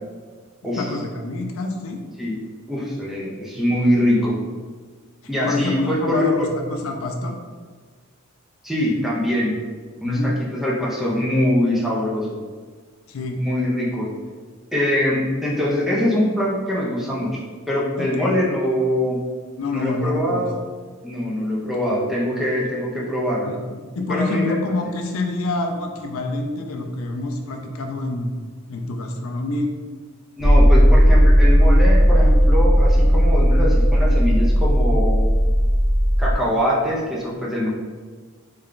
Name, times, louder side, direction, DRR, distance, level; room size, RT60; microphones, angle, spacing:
voice 1, 0.8-2.0 5.4-7.3 10.0-10.4 13.1-13.4 18.0-18.4 19.6-20.5 21.6-21.7 23.5-28.3 28.7-29.7, left 2 dB, 70° left, 3 dB, 0.4 m, -27 dB
voice 2, 2.7-4.4 5.3-6.5 8.6-9.5 10.0-12.4 13.4-14.1 14.7-17.3 17.7-19.2 19.7-20.6 21.0-23.5 24.1-24.5 24.8-24.9 30.4-35.3 36.2-37.7, left 1 dB, ahead, -6 dB, 0.5 m, -23 dB
sound 1, 30.4-36.3, equal, 50° right, 0.7 m, -15 dB
3.3 x 2.2 x 3.7 m, 1.5 s
head